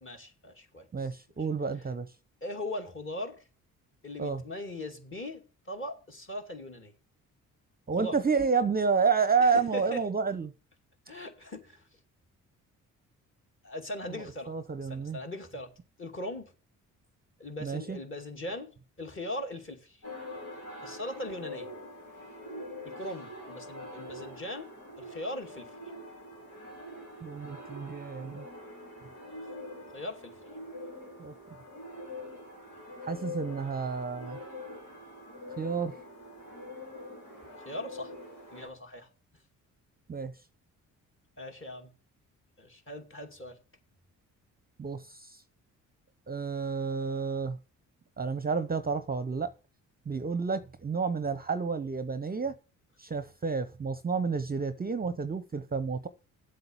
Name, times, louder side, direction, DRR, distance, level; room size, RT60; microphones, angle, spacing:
voice 1, 0.0-1.1 2.4-3.4 4.0-6.9 7.9-8.2 9.4-10.0 11.1-11.9 13.6-14.5 14.8-15.7 16.0-16.5 17.4-18.7 19.0-20.0 20.8-21.7 22.8-24.7 25.0-25.8 29.9-30.3 37.6-38.1 38.5-39.1 41.4-41.9 42.6-43.6, left 1 dB, 30° left, 2.5 m, -39 dB
voice 2, 0.9-2.1 4.2-4.4 7.9-10.5 14.5-15.2 17.6-18.0 27.2-28.5 31.2-31.3 33.0-34.4 35.6-36.0 40.1-40.3 44.8-45.4 46.3-47.6 48.2-49.5 50.1-52.5 53.0-56.1, right 5 dB, 25° right, 0.8 m, -30 dB
sound 1, 20.0-38.7, left 1 dB, 85° left, 4.7 m, -44 dB
7.9 x 6.6 x 7.3 m
hypercardioid pair, 45°, 39 cm